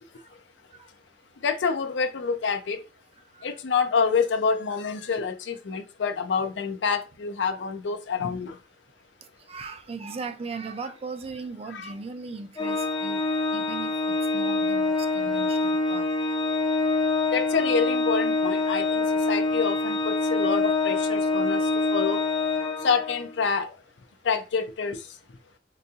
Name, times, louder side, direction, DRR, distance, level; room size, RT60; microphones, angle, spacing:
voice 1, 1.4-2.8 3.4-8.6 11.7-11.9 17.3-22.2 22.8-23.7 24.2-25.0, left 5 dB, 80° left, 0.5 m, -27 dB
voice 2, 3.2-3.6 9.2-16.4 16.7-17.2, right 4 dB, 35° right, 0.4 m, -39 dB
Organ, 12.6-23.3, left 3 dB, 25° left, 0.5 m, -25 dB
3.8 x 2.3 x 2.7 m
head